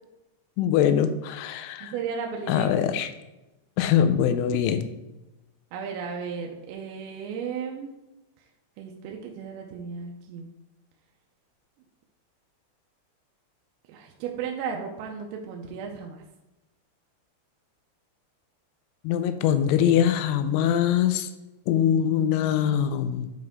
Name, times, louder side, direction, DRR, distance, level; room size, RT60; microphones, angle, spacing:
voice 1, 0.6-1.9 2.5-3.1 3.8-4.9 19.0-21.3 21.7-23.3, left 9 dB, 85° left, 10 dB, 2.9 m, -23 dB
voice 2, 1.8-2.8 5.7-7.9 8.8-10.5 13.9-16.2 21.9-22.0, right 6 dB, 90° right, 1 dB, 3.3 m, -35 dB
9.6 x 4.5 x 3.6 m, 1.0 s
omnidirectional pair, 5.7 m